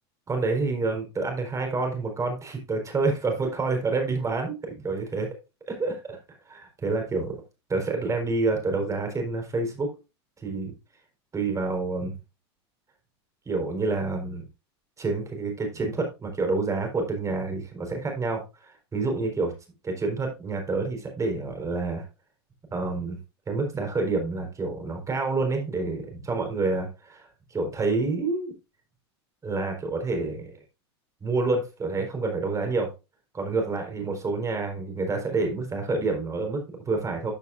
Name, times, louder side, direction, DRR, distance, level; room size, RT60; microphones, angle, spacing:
voice 1, 0.3-5.3 5.7-6.2 6.5-7.4 7.7-9.9 10.4-10.7 11.3-12.1 13.5-14.4 15.0-19.5 19.8-22.0 22.7-23.2 23.5-28.5 29.4-30.5 31.2-32.9 33.3-37.3, right 3 dB, 20° right, 3 dB, 4.3 m, -28 dB
13.0 x 6.8 x 2.6 m, 0.27 s
hypercardioid pair, 100°, 14 cm